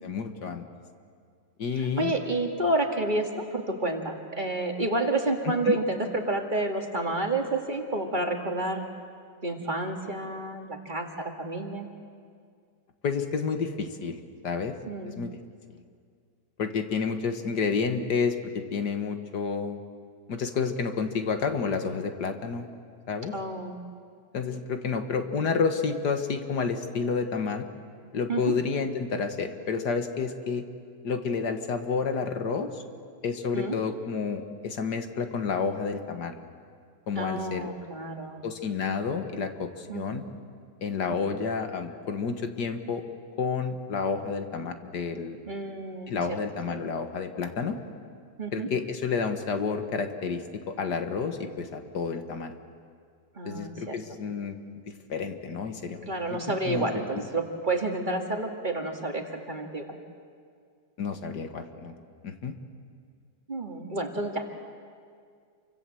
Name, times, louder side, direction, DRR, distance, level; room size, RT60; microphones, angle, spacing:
voice 1, 0.0-0.6 1.6-2.1 5.7-5.8 13.0-14.2 14.4-14.7 15.1-15.3 16.6-19.8 20.3-22.7 23.1-23.3 24.3-27.7 28.1-30.6 31.0-32.8 33.2-36.4 37.1-37.7 38.4-40.2 40.8-43.0 43.4-45.4 46.1-47.8 48.5-52.5 53.5-54.6 54.9-56.4 56.7-56.9 61.0-61.9 62.2-62.5, left 5 dB, 75° left, 7 dB, 2.1 m, -30 dB
voice 2, 1.7-8.9 9.4-11.9 14.9-15.2 23.3-23.8 28.3-28.6 33.5-33.8 37.2-38.5 39.9-40.2 41.1-41.2 45.5-46.4 46.7-46.8 48.4-48.7 53.4-54.0 56.1-60.0 63.5-64.5, right 2 dB, 30° right, 3 dB, 2.2 m, -30 dB
29.0 x 24.5 x 7.8 m, 2.1 s
omnidirectional pair, 1.8 m